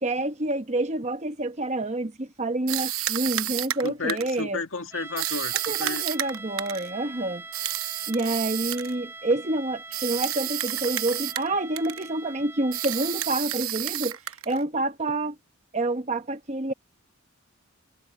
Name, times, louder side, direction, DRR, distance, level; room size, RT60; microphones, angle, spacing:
voice 1, 0.0-4.6 5.7-7.4 8.1-14.2 14.5-15.4 15.7-16.7, right 2 dB, 30° right, 1.0 m, -28 dB
sound 1, 2.7-4.4 5.2-6.9 7.5-8.9 9.9-11.5 11.8-12.1 12.7-14.6, right 13 dB, 75° right, 0.9 m, -30 dB
voice 2, 3.8-6.0, left 3 dB, 65° left, 2.2 m, -32 dB
sound 2, 4.9-13.6, right 3 dB, 10° right, 2.9 m, -43 dB
head